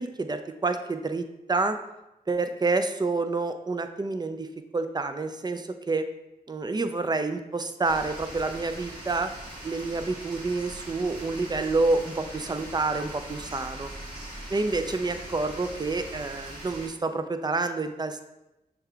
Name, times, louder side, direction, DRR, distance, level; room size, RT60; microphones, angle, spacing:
voice 1, 0.0-1.8 2.3-4.5 4.7-6.1 6.5-9.3 9.6-13.9 14.5-18.2, right 3 dB, 25° right, 8 dB, 0.4 m, -28 dB
sound 1, 7.8-16.9, right 1 dB, 60° right, 1.4 m, -41 dB
6.4 x 3.3 x 2.4 m, 0.94 s
cardioid pair, 45°, 17 cm